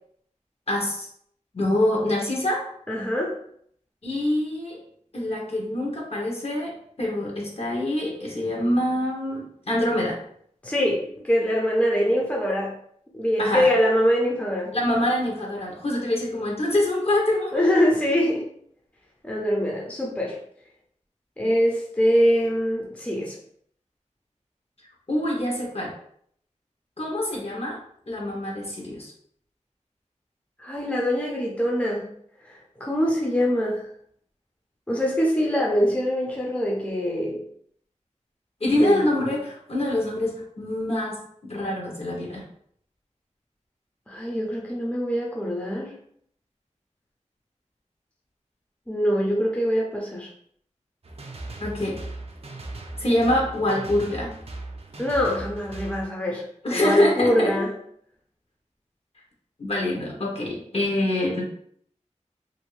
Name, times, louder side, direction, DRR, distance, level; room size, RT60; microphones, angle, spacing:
voice 1, 0.7-1.1 1.5-2.6 4.0-4.8 5.1-10.2 13.4-13.7 14.7-17.9 25.1-25.9 27.0-27.8 28.1-29.1 38.6-42.4 51.6-52.0 53.0-54.3 56.6-57.5 59.6-61.4, left 1 dB, 55° left, -2 dB, 0.9 m, -25 dB
voice 2, 2.9-3.4 10.6-12.7 13.1-14.8 17.5-18.5 19.2-20.4 21.4-23.4 30.6-32.1 32.4-33.9 34.9-37.4 38.7-39.0 44.1-45.9 48.9-50.3 55.0-57.7, equal, 10° left, -2 dB, 0.5 m, -23 dB
sound 1, 51.0-56.1, right 2 dB, 55° right, 0.5 m, -38 dB
2.6 x 2.6 x 3.1 m, 0.65 s
wide cardioid pair, 75°, 13 cm